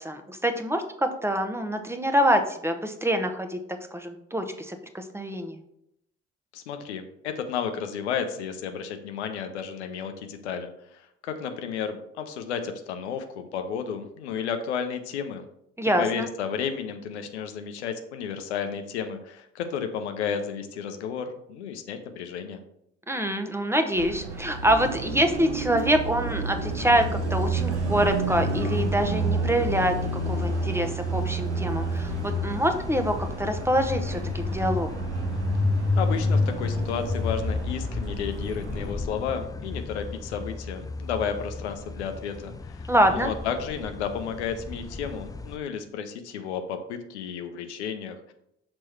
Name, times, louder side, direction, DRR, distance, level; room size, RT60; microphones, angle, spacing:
voice 1, 0.0-3.6 3.9-5.6 15.8-16.3 23.1-29.9 30.3-34.9 42.9-43.3, right 1 dB, 5° right, 6 dB, 0.9 m, -25 dB
voice 2, 6.5-15.4 16.0-22.6 36.0-48.3, left 7 dB, 80° left, 7 dB, 0.6 m, -32 dB
Car passing by, 24.0-38.9, right 3 dB, 90° right, 0.7 m, -31 dB
sound 1, 26.7-45.6, left 3 dB, 10° left, 0.3 m, -32 dB
6.1 x 4.3 x 4.5 m, 0.77 s
figure-of-eight pair, 45°, 34 cm